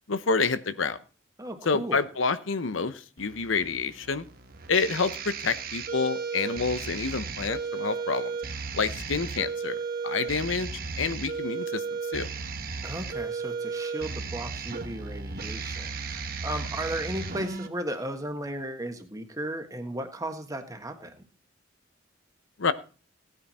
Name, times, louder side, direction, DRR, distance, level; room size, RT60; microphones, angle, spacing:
voice 1, 0.1-1.0 1.6-4.2 4.7-8.3 8.7-10.7 11.0-12.3 22.6-22.7, left 4 dB, 75° left, 13 dB, 0.9 m, -28 dB
voice 2, 1.4-2.0 12.8-21.3, right 1 dB, 20° right, 7 dB, 1.5 m, -35 dB
sound 1, 3.2-17.7, right 5 dB, 50° right, 1.4 m, -35 dB
17.0 x 9.2 x 4.3 m, 0.36 s
head